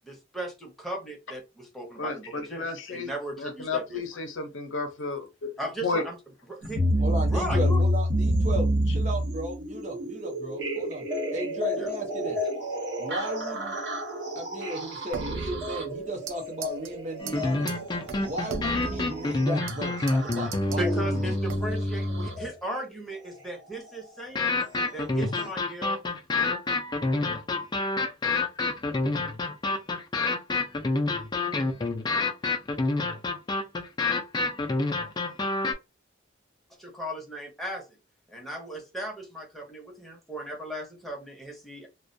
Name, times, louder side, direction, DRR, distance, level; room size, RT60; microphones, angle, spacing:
voice 1, 0.0-4.0 5.6-6.2 6.5-6.8 7.3-7.8 11.8-11.9 20.7-24.7 24.9-26.0 36.8-37.9 38.3-41.9, right 1 dB, ahead, 0.7 m, -36 dB
voice 2, 2.0-3.1 3.4-5.5 5.8-6.1, left 4 dB, 75° left, 0.6 m, -32 dB
sound 1, 6.6-22.5 23.7-23.8 24.6-24.7 25.4-25.5, equal, 60° right, 0.9 m, -29 dB
voice 3, 7.0-11.0 11.3-12.4 13.0-13.8 14.3-17.7 18.2-21.4, right 1 dB, 40° right, 0.7 m, -35 dB
sound 2, 15.1-16.4 16.6-16.9 17.3-17.4 17.7-17.8 18.1-19.8 20.1-20.8 21.5-21.9, right 4 dB, 85° right, 0.4 m, -37 dB
sound 3, 17.2-22.5 24.4-35.7, left 2 dB, 20° left, 0.3 m, -27 dB
2.3 x 2.1 x 2.5 m
head